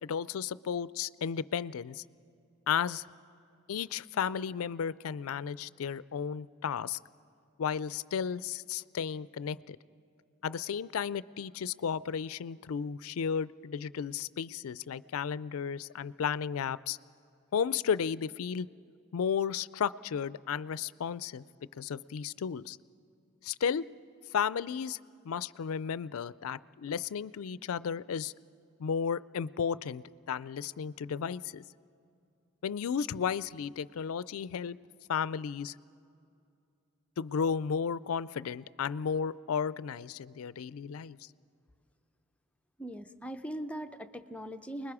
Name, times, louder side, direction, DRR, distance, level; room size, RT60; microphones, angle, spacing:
voice 1, 0.0-2.0 2.7-3.0 3.7-7.0 7.6-9.8 10.4-17.0 17.5-18.7 19.1-21.4 21.8-22.8 23.4-23.8 24.3-25.0 25.2-28.3 28.8-31.6 32.6-34.8 35.1-35.8 37.2-41.3, left 7 dB, 75° left, 18 dB, 0.4 m, -33 dB
voice 2, 42.8-44.9, right 1 dB, 5° left, 7 dB, 0.5 m, -40 dB
29.0 x 20.5 x 4.9 m, 2.5 s
head